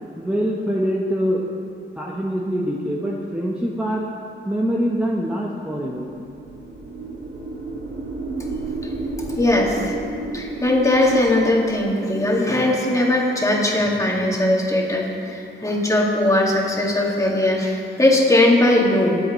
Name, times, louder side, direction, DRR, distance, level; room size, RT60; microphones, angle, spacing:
voice 1, 0.2-1.4 2.0-4.1 4.4-6.1, equal, 5° right, -4 dB, 1.1 m, -24 dB
sound 1, 6.1-12.1, right 2 dB, 65° right, 2.2 m, -32 dB
voice 2, 9.4-9.9 10.3-19.2, left 1 dB, 15° left, -3 dB, 2.1 m, -19 dB
19.5 x 8.0 x 3.2 m, 2.6 s
cardioid pair, 85°, 20 cm